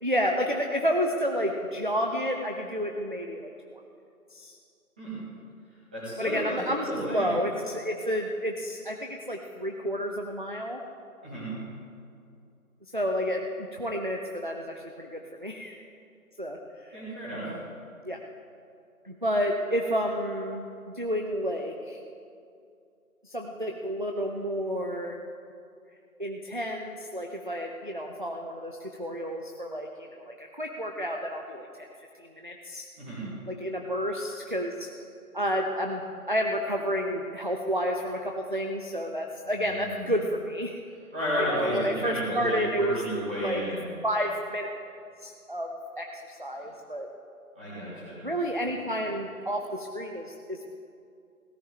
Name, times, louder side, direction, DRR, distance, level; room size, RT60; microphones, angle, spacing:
voice 1, 0.0-3.8 4.3-4.6 6.2-10.8 12.9-15.7 16.4-16.6 16.8-17.0 18.0-18.2 19.0-22.0 23.2-25.2 26.2-31.7 32.2-32.9 33.5-34.9 35.3-40.8 41.4-43.0 43.4-43.6 44.0-44.7 45.2-45.7 46.0-47.1 48.2-50.7, equal, 35° right, 2 dB, 0.6 m, -30 dB
voice 2, 5.9-7.3 11.2-11.5 16.9-17.5 33.0-33.3 39.4-40.1 41.1-43.8 47.6-48.2, equal, 5° right, -12 dB, 1.8 m, -32 dB
17.0 x 11.5 x 3.7 m, 2.4 s
figure-of-eight pair, 175°, 44 cm